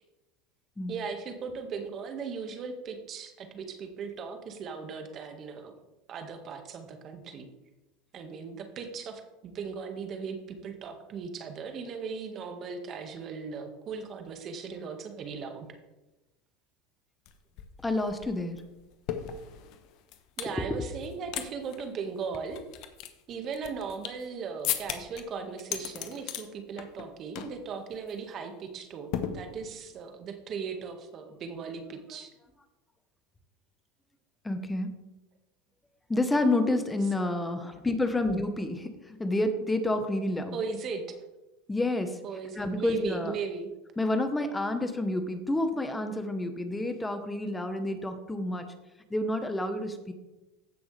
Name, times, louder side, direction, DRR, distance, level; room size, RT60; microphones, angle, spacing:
voice 1, 0.9-5.7 6.1-7.5 8.1-15.7 20.4-22.6 23.3-32.3 37.2-37.6 40.5-41.2 42.2-43.7, right 5 dB, 40° right, 6 dB, 1.7 m, -38 dB
sound 1, 17.3-17.4 17.6-20.6 21.0-21.5 21.7-21.8 22.3-24.3 24.6-25.2 25.6-26.4 26.8-27.1 27.4-27.6 27.9-28.2 29.1-29.9, left 10 dB, 55° left, 1.1 m, -36 dB
voice 2, 17.8-18.6 34.4-34.9 36.1-40.6 41.7-42.2 42.5-43.3 44.0-48.7 49.1-50.1, left 2 dB, 10° left, 8 dB, 1.1 m, -29 dB
15.5 x 6.1 x 3.4 m, 1.0 s
hypercardioid pair, 100°, 0 cm